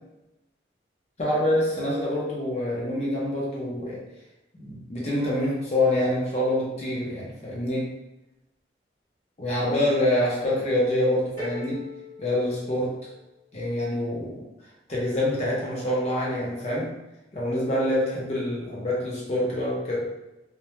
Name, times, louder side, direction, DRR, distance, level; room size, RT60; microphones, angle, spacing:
voice 1, 1.2-4.0 4.6-7.9 9.4-11.8 12.2-13.0 13.5-14.5 14.9-16.9 17.3-20.1, left 1 dB, 35° left, -5 dB, 0.6 m, -26 dB
sound 1, 11.4-13.4, left 4 dB, 40° right, 0.9 m, -40 dB
2.2 x 2.0 x 2.9 m, 0.96 s
head